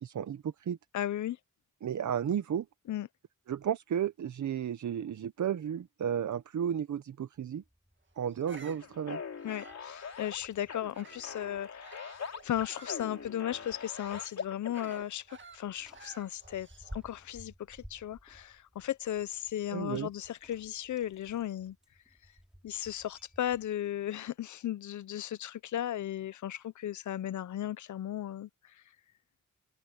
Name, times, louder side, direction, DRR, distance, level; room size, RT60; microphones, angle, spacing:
voice 1, 0.0-0.8 1.8-2.7 3.5-7.6 8.2-9.2 19.7-20.1, right 9 dB, 75° right, 0.7 m, -33 dB
voice 2, 0.9-1.4 2.9-3.1 9.4-12.0 12.4-16.7 16.9-21.8 22.6-28.5, left 11 dB, 75° left, 0.5 m, -36 dB
Bicycle, 7.4-23.7, equal, ahead, 3.1 m, -56 dB
Bird vocalization bird call bird song, 8.3-11.4 11.8-17.1, right 4 dB, 40° right, 1.9 m, -55 dB
sound 1, 8.5-15.0, left 6 dB, 60° left, 3.0 m, -43 dB
wide cardioid pair, 170°, 30 cm